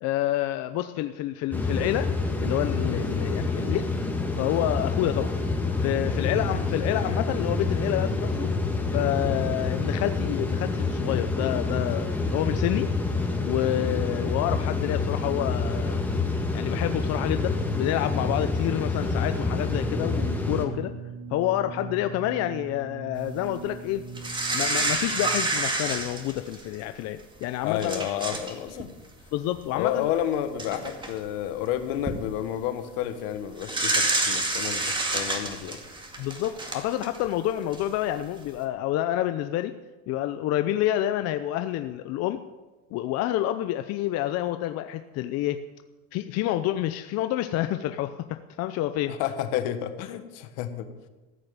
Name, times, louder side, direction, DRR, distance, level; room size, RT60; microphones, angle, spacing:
voice 1, 0.0-2.1 2.4-3.9 4.4-5.3 5.8-8.5 8.9-12.9 13.4-16.0 16.5-20.9 21.3-24.0 24.5-28.0 29.3-30.1 36.2-39.7 40.1-42.4 42.9-45.6 46.1-49.2, left 13 dB, 55° left, 10 dB, 0.7 m, -28 dB
sound 1, 1.5-20.7, left 3 dB, 5° left, 1.9 m, -27 dB
sound 2, 18.0-25.7, right 4 dB, 50° right, 2.3 m, -41 dB
sound 3, 24.2-26.8 27.4-27.5 27.8-28.5 28.8-29.0 30.1-30.2 30.6-31.1 31.8-32.1 33.6-37.3 37.7-37.8, right 2 dB, 15° right, 2.0 m, -28 dB
voice 2, 27.6-28.9 29.7-35.8 49.1-50.9, left 11 dB, 75° left, 9 dB, 1.4 m, -30 dB
14.5 x 6.6 x 8.8 m, 1.2 s
supercardioid pair, 120°, 30 cm